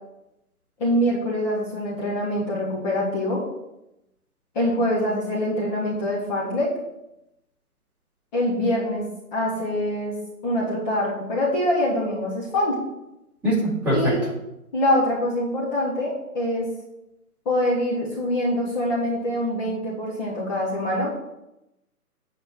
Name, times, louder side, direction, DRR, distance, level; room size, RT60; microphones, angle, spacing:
voice 1, 0.8-3.4 4.5-6.7 8.3-10.2 10.4-12.8 13.9-14.2 14.7-16.7 17.4-21.1, left 1 dB, 30° left, -7 dB, 3.2 m, -24 dB
voice 2, 13.4-14.2, equal, 5° right, -10 dB, 3.8 m, -22 dB
9.9 x 5.2 x 6.8 m, 0.89 s
figure-of-eight pair, 145°, 46 cm